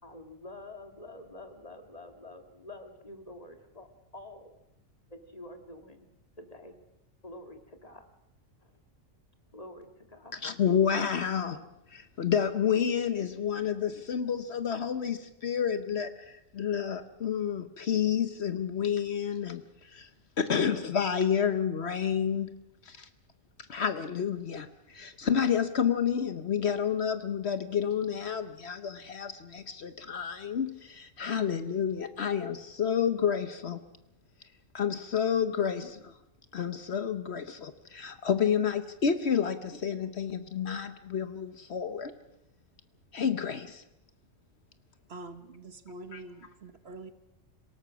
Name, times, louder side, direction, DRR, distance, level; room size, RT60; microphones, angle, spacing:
voice 1, 0.0-4.6 5.1-6.1 6.4-6.7 7.2-8.1 8.6-8.7 9.5-10.3, left 1 dB, 30° left, 5 dB, 2.0 m, -47 dB
voice 2, 10.3-11.6 11.9-20.1 20.4-22.5 22.8-23.1 23.7-33.8 34.7-36.1 36.5-42.1 43.1-43.8 46.1-46.2, left 7 dB, 60° left, 11 dB, 1.1 m, -30 dB
voice 3, 45.1-47.1, right 2 dB, 55° right, 10 dB, 1.4 m, -45 dB
27.0 x 17.5 x 6.1 m, 0.90 s
omnidirectional pair, 1.3 m